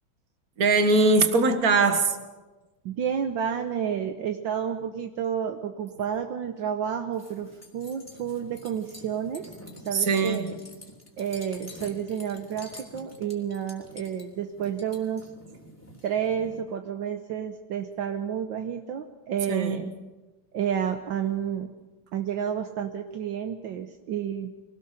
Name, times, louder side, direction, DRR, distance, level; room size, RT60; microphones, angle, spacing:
voice 1, 0.6-2.2 9.9-10.5 19.5-19.8, right 3 dB, 45° right, 8 dB, 1.9 m, -21 dB
voice 2, 2.8-9.5 9.9-10.5 11.2-15.3 16.0-19.9 20.5-21.7 22.1-24.5, right 8 dB, 70° right, 6 dB, 1.6 m, -30 dB
sound 1, 7.1-16.6, equal, 5° left, 3.3 m, -47 dB
23.5 x 18.0 x 6.7 m, 1.2 s
omnidirectional pair, 2.2 m